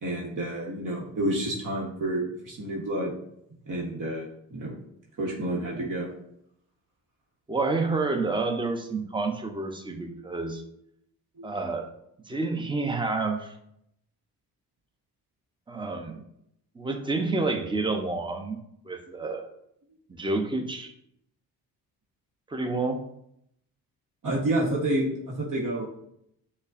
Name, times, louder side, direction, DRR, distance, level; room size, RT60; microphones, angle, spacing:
voice 1, 0.0-3.1 3.7-4.8 5.2-6.1 11.4-11.5 24.2-25.9, right 1 dB, 50° right, -2 dB, 1.1 m, -29 dB
voice 2, 7.5-10.6 11.4-11.9 12.3-13.5 15.7-16.2 16.7-19.5 20.1-20.9 22.5-23.0, right 3 dB, 10° right, 4 dB, 0.7 m, -29 dB
6.4 x 2.2 x 2.5 m, 0.75 s
supercardioid pair, 55°, 40 cm